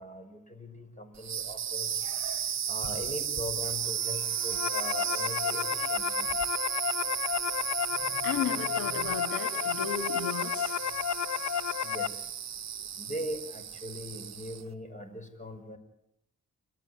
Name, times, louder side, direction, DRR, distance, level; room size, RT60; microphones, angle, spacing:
voice 1, 0.0-2.0 2.7-6.3 11.8-12.3 13.0-15.8, equal, 20° left, 8 dB, 5.9 m, -40 dB
sound 1, 1.1-14.7, right 9 dB, 50° right, 1.1 m, -34 dB
sound 2, 4.2-12.1, left 9 dB, 55° left, 0.8 m, -32 dB
voice 2, 8.2-10.8, left 6 dB, 85° left, 8 dB, 2.1 m, -35 dB
29.0 x 13.5 x 9.8 m, 0.78 s
supercardioid pair, 50°, 34 cm